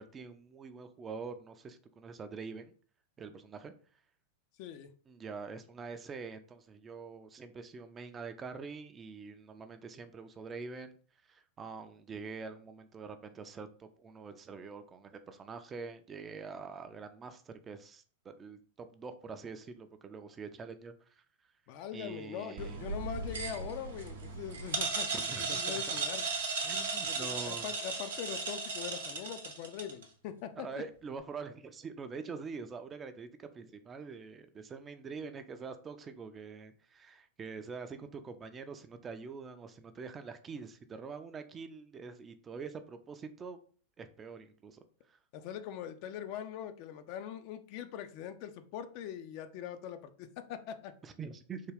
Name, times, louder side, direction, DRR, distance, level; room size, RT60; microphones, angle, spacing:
voice 1, 0.0-2.7 3.2-3.7 5.1-11.0 11.3-21.2 21.9-22.8 25.1-26.0 26.6-27.7 30.6-43.6 44.0-45.2 51.0-51.6, right 5 dB, 25° right, 9 dB, 0.4 m, -45 dB
voice 2, 4.6-4.9 21.7-26.2 27.0-30.7 45.3-50.9, left 9 dB, 50° left, 9 dB, 0.4 m, -42 dB
sound 1, 22.6-30.0, right 4 dB, 75° right, 0.7 m, -36 dB
3.6 x 2.2 x 3.3 m, 0.43 s
figure-of-eight pair, 95°, 0 cm